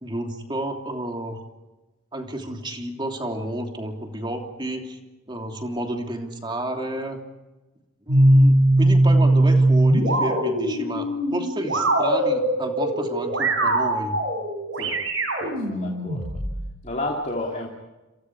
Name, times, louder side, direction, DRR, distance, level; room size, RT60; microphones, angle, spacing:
voice 1, 0.0-1.4 2.1-5.0 5.3-7.2 8.1-14.2, right 1 dB, 20° right, 2 dB, 3.2 m, -31 dB
sound 1, 8.1-16.7, right 1 dB, 65° right, 7.5 m, -20 dB
voice 2, 15.4-16.3 16.8-17.7, left 1 dB, 35° left, 0 dB, 2.9 m, -31 dB
29.0 x 28.5 x 4.8 m, 1.1 s
head